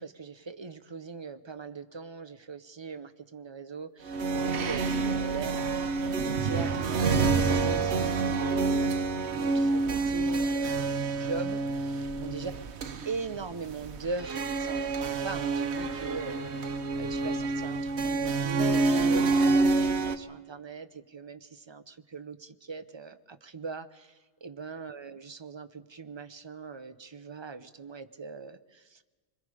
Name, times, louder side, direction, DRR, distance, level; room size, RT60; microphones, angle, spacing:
voice 1, 0.0-12.5 13.0-29.0, right 4 dB, 30° right, 11 dB, 0.7 m, -40 dB
sound 1, 4.0-20.2, right 3 dB, 65° right, 1.2 m, -28 dB
27.0 x 22.0 x 5.0 m, 1.3 s
omnidirectional pair, 1.2 m